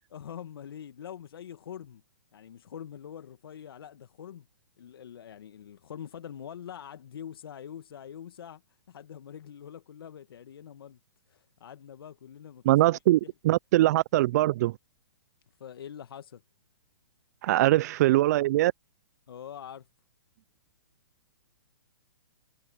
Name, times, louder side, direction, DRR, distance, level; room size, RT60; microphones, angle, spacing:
voice 1, 0.1-2.0 2.3-4.5 4.8-8.6 8.9-11.0 11.3-13.3 15.6-16.4 19.3-19.9, left 9 dB, 70° left, 1.3 m, -44 dB
voice 2, 12.7-13.2 13.4-14.7 17.4-18.7, right 16 dB, 45° right, 0.4 m, -22 dB
hypercardioid pair, 140°, 13 cm